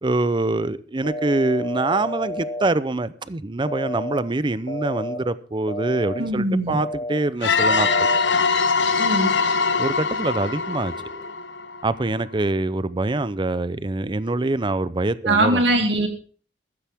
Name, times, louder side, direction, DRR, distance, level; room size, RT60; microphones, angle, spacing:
voice 1, 0.0-7.9 9.8-10.9 11.8-15.6, right 2 dB, 25° right, 0.6 m, -24 dB
sound 1, 1.0-2.7 3.7-4.2 4.7-5.2 5.7-6.2 6.7-7.2 7.7-8.2 9.0-11.2 14.3-14.5, left 1 dB, 45° left, 4.0 m, -32 dB
voice 2, 6.2-6.8 9.0-9.3 15.3-16.1, right 1 dB, 80° right, 2.5 m, -21 dB
sound 2, 7.4-12.0, left 4 dB, 80° left, 1.1 m, -22 dB
15.0 x 13.0 x 3.6 m
head